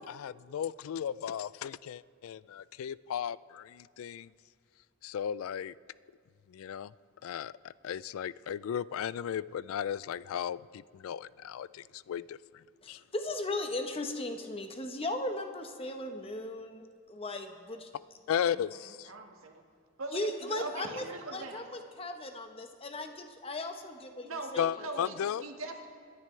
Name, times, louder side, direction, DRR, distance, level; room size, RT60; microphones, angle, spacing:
voice 1, 0.0-4.3 5.0-5.7 6.5-6.9 7.2-13.0 18.3-19.1 24.6-25.4, left 9 dB, 80° left, 20 dB, 0.3 m, -35 dB
voice 2, 12.8-17.9 20.1-25.3, left 2 dB, 25° left, 6 dB, 0.9 m, -37 dB
voice 3, 18.4-19.6 20.0-21.6 24.2-25.9, right 3 dB, 75° right, 3 dB, 1.5 m, -42 dB
25.0 x 10.5 x 3.2 m, 2.2 s
head